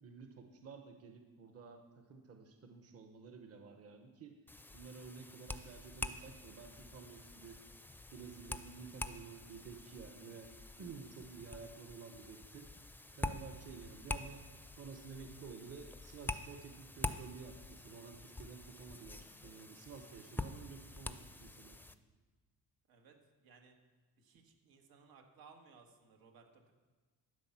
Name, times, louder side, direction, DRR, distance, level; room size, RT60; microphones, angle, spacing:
voice 1, 0.0-4.4 4.7-7.6 8.1-10.5 10.8-12.7 13.2-14.4 14.7-21.8, right 5 dB, 45° right, 5 dB, 1.1 m, -52 dB
sound 1, 4.5-22.0, left 2 dB, 5° left, 0.4 m, -46 dB
voice 2, 22.9-23.7 24.2-26.7, right 5 dB, 85° right, 3 dB, 1.9 m, -62 dB
12.5 x 8.1 x 6.0 m, 1.4 s
cardioid pair, 140°, 35 cm